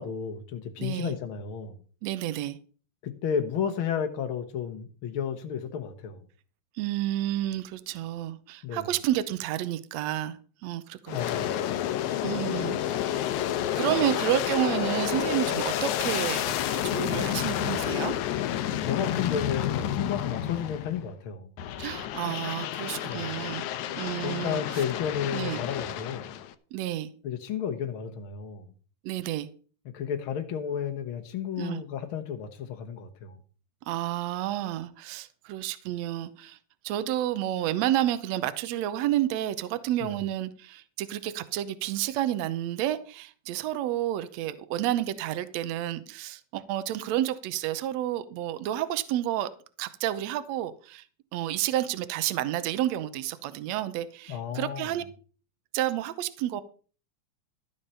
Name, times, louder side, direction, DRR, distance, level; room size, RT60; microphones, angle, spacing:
voice 1, 0.0-1.7 3.0-6.2 8.6-8.8 11.1-11.6 18.7-21.5 23.0-23.3 24.2-26.3 27.2-28.6 29.8-33.4 40.0-40.2 54.3-54.9, left 8 dB, 60° left, 1.5 m, -32 dB
voice 2, 0.8-1.1 2.0-2.6 6.8-11.5 12.2-13.4 13.8-18.1 21.8-23.7 24.0-24.8 25.3-25.6 26.7-27.1 29.0-29.5 31.6-31.8 33.9-36.6 36.8-49.5 49.8-51.0 51.3-55.0 55.7-56.6, right 13 dB, 70° right, 2.0 m, -30 dB
Aircraft, 11.1-21.1 21.6-26.5, left 11 dB, 85° left, 2.2 m, -30 dB
13.5 x 7.2 x 5.6 m
omnidirectional pair, 3.3 m